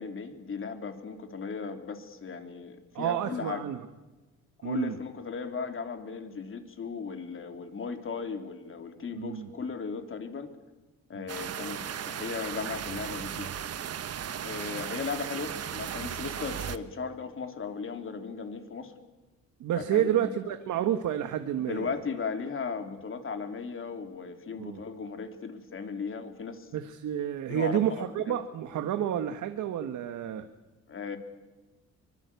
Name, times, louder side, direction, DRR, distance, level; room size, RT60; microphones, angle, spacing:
voice 1, 0.0-3.6 4.6-10.5 11.1-13.5 14.4-18.9 19.8-20.4 21.6-26.7 27.5-28.4 30.9-31.2, left 5 dB, 45° left, 7 dB, 3.3 m, -37 dB
voice 2, 2.9-3.8 4.6-5.0 9.1-9.5 11.1-11.3 19.6-21.9 24.6-24.8 26.7-30.5, right 10 dB, 75° right, 9 dB, 1.5 m, -30 dB
sound 1, 11.3-16.8, right 9 dB, 55° right, 1.4 m, -36 dB
24.5 x 21.5 x 8.3 m, 1.2 s
cardioid pair, 90°, 30 cm